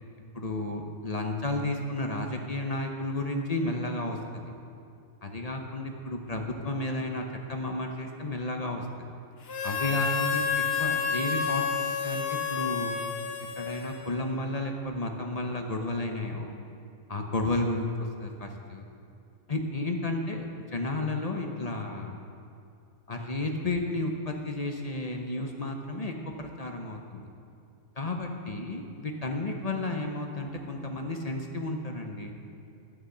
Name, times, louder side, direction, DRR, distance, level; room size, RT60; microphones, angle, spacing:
voice 1, 0.3-4.2 5.2-8.9 9.6-11.6 12.0-12.9 13.6-16.5 17.1-17.9 18.2-18.8 19.5-20.5 20.7-22.2 23.1-27.3 28.0-32.3, left 2 dB, 35° left, 2 dB, 0.8 m, -32 dB
Harmonica, 9.5-14.3, left 6 dB, 55° left, 1.1 m, -30 dB
11.5 x 6.1 x 7.9 m, 2.5 s
omnidirectional pair, 1.3 m